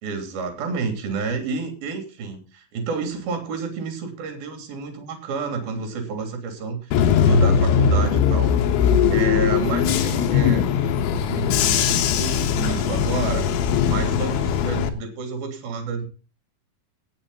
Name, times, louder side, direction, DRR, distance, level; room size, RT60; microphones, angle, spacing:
voice 1, 0.0-8.5 9.1-10.6 11.3-13.5 13.9-16.1, right 5 dB, 50° right, 6 dB, 4.6 m, -30 dB
Bus / Engine, 6.9-14.9, left 7 dB, 85° left, 4.0 m, -20 dB
18.5 x 8.8 x 4.1 m, 0.35 s
omnidirectional pair, 5.7 m